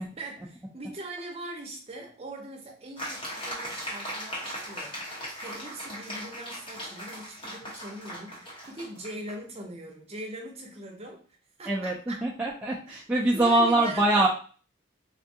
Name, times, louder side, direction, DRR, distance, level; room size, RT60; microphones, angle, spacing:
voice 1, 0.0-12.3 12.9-13.0 13.3-14.3, right 1 dB, 30° right, 1 dB, 0.7 m, -41 dB
sound 1, 3.0-9.4, equal, 25° left, 0.9 m, -38 dB
voice 2, 11.7-14.3, right 2 dB, 5° right, -5 dB, 0.3 m, -24 dB
3.5 x 2.2 x 2.7 m, 0.40 s
head